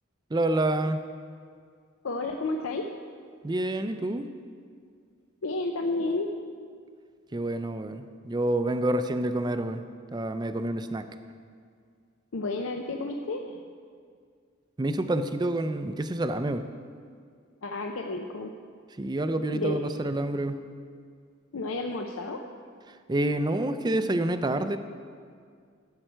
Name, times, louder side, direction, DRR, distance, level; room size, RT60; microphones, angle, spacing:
voice 1, 0.3-1.0 3.4-4.3 7.3-9.8 10.1-11.0 14.8-16.6 19.0-20.6 23.1-24.8, right 1 dB, 20° right, 9 dB, 0.4 m, -28 dB
voice 2, 2.0-2.9 5.4-6.3 12.3-13.7 17.6-18.5 19.5-19.8 21.5-22.4, left 2 dB, 80° left, 3 dB, 0.6 m, -31 dB
14.5 x 7.7 x 4.5 m, 2.1 s
head